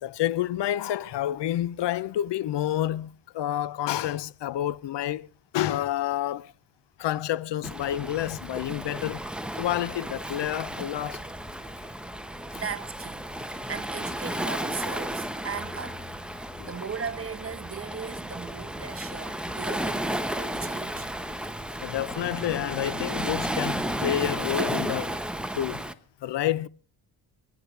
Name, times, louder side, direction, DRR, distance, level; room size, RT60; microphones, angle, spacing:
voice 1, 0.0-5.3 5.5-6.5 7.0-9.2 9.5-11.3 11.7-11.8 16.6-16.7 21.8-25.2 25.5-25.9 26.2-26.7, left 12 dB, 70° left, 0.8 m, -29 dB
Waves surf, 7.6-25.9, right 1 dB, ahead, 1.1 m, -33 dB
voice 2, 12.5-16.1 16.6-21.1 21.7-21.9, right 6 dB, 30° right, 1.2 m, -38 dB
30.0 x 9.9 x 3.3 m
cardioid pair, 80°, 44 cm